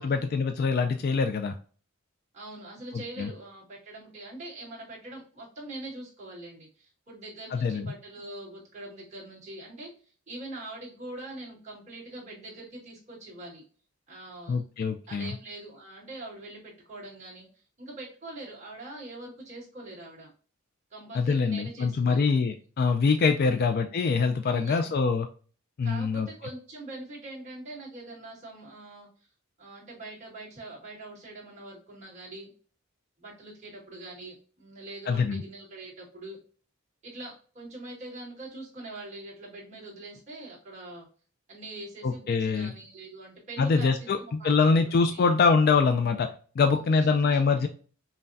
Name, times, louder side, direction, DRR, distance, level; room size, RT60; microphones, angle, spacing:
voice 1, 0.0-1.5 3.2-3.3 7.5-7.9 14.5-15.3 21.1-25.3 25.8-26.3 35.1-35.4 42.0-42.7 43.6-46.3 46.6-47.7, left 4 dB, 45° left, 6 dB, 0.3 m, -24 dB
voice 2, 2.3-9.9 10.3-13.6 14.1-14.6 15.1-17.5 17.8-20.3 20.9-22.3 23.4-23.6 24.4-25.0 25.8-29.1 29.6-32.5 33.2-36.4 37.0-41.1 41.5-45.2 46.7-47.7, right 2 dB, 35° right, -6 dB, 1.8 m, -43 dB
5.5 x 2.2 x 2.6 m, 0.40 s
head